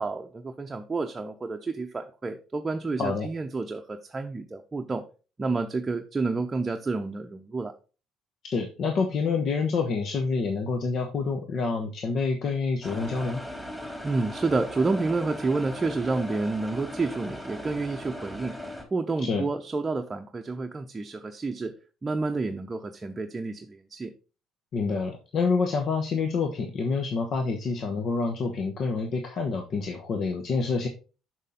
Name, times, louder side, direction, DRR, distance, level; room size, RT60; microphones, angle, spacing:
voice 1, 0.0-5.0 5.4-7.7 14.0-18.5 18.9-21.7 22.0-24.1, right 3 dB, 25° right, 5 dB, 0.7 m, -29 dB
voice 2, 8.4-13.4 19.2-19.4 24.7-30.9, left 4 dB, 55° left, 3 dB, 1.1 m, -27 dB
sound 1, 12.8-18.8, equal, 10° left, 3.6 m, -38 dB
6.6 x 6.2 x 3.8 m, 0.34 s
hypercardioid pair, 60°, 0 cm